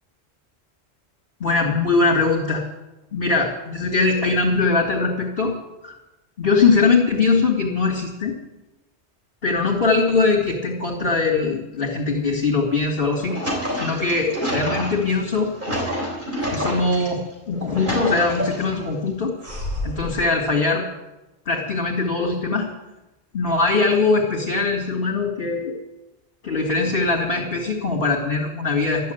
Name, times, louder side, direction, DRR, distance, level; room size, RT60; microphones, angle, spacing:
voice 1, 1.4-2.6 3.1-5.5 5.8-6.0 6.4-8.4 9.4-13.3 13.7-15.5 16.5-17.2 17.5-19.3 19.8-20.8 21.5-22.7 23.3-25.8 26.4-29.1, left 4 dB, 55° left, -4 dB, 2.7 m, -21 dB
sound 1, 13.1-17.1 17.5-18.8 19.4-20.1, equal, 50° right, 4.1 m, -28 dB
13.5 x 11.5 x 8.1 m, 1.0 s
omnidirectional pair, 1.1 m